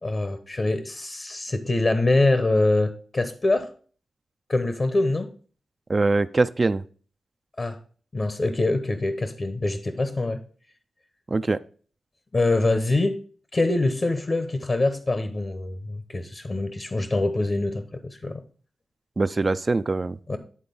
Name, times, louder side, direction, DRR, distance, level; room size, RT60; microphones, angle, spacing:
voice 1, 0.0-3.7 4.5-5.3 7.6-7.8 8.1-10.4 12.3-13.2 13.5-18.4 20.3-20.4, left 2 dB, 45° left, 9 dB, 0.9 m, -24 dB
voice 2, 5.9-6.8 11.3-11.6 19.2-20.2, right 3 dB, 40° right, 11 dB, 0.4 m, -22 dB
9.7 x 3.8 x 5.3 m, 0.42 s
cardioid pair, 65°, 0 cm